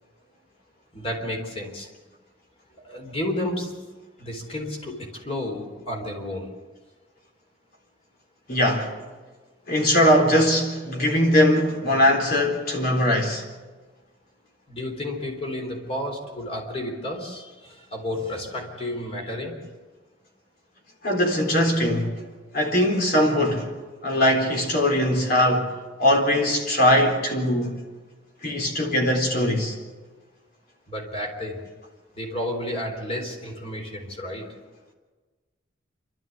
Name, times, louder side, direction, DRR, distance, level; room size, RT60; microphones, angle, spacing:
voice 1, 0.9-1.9 2.8-3.8 4.2-6.5 14.7-19.6 30.9-31.7 32.2-34.5, left 1 dB, 30° left, 3.8 m, -31 dB
voice 2, 8.5-9.0 9.7-13.4 21.0-22.2 22.5-23.8 24.0-27.8 28.4-29.8, left 1 dB, 55° left, 4.0 m, -21 dB
28.5 x 13.0 x 8.1 m
head